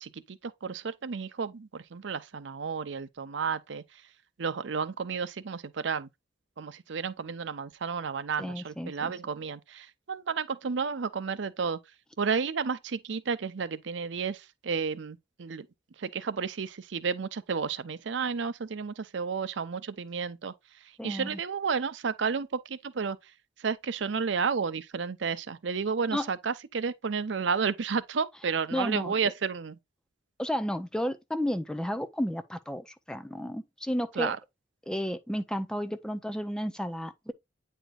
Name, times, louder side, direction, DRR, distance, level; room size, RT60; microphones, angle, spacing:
voice 1, 0.0-3.8 4.4-6.1 6.6-11.8 12.2-15.7 16.0-20.5 21.0-23.2 23.6-29.8 34.2-34.4, right 5 dB, 70° right, 0.6 m, -32 dB
voice 2, 8.4-9.1 21.0-21.4 26.1-26.3 28.7-29.3 30.4-34.4 34.9-37.3, equal, 5° left, 0.5 m, -32 dB
9.1 x 4.4 x 2.4 m
head